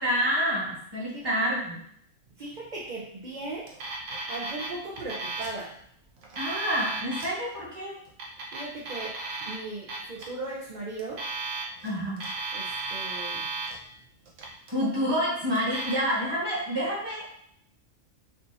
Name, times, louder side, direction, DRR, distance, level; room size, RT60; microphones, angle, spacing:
voice 1, 0.0-1.8 6.4-8.0 11.8-12.2 14.7-17.3, equal, 20° right, -6 dB, 1.2 m, -28 dB
voice 2, 2.4-3.7 4.3-5.8 8.5-9.2 9.5-11.3 12.5-13.5, right 2 dB, 45° right, -5 dB, 0.7 m, -38 dB
Alarm, 3.7-4.7 5.0-5.6 6.2-7.3 8.1-9.5 9.9-10.2 11.0-11.9 12.2-13.8 14.3-14.8 15.5-15.9, right 3 dB, 70° right, 1.1 m, -34 dB
4.7 x 2.7 x 2.6 m, 0.68 s
omnidirectional pair, 1.3 m